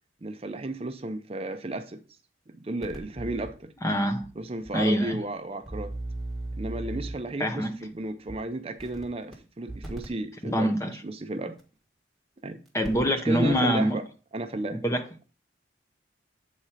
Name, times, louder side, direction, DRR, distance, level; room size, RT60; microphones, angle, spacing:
voice 1, 0.2-2.0 2.5-3.7 4.4-6.0 6.6-11.6 12.4-12.6 13.2-14.1 14.3-14.8, right 2 dB, 30° right, 0.6 m, -33 dB
sound 1, 2.8-3.5 4.2-4.3 4.6-4.7 5.6-7.3 8.3-8.4 8.8-9.3 9.7-10.1 11.6-11.7 12.7-13.2 13.5-13.6, right 1 dB, ahead, 1.5 m, -37 dB
voice 2, 3.8-4.3 4.7-5.2 7.4-7.8 10.4-11.0 12.7-14.0 14.7-15.0, equal, 15° left, 0.6 m, -25 dB
7.7 x 4.3 x 4.9 m
head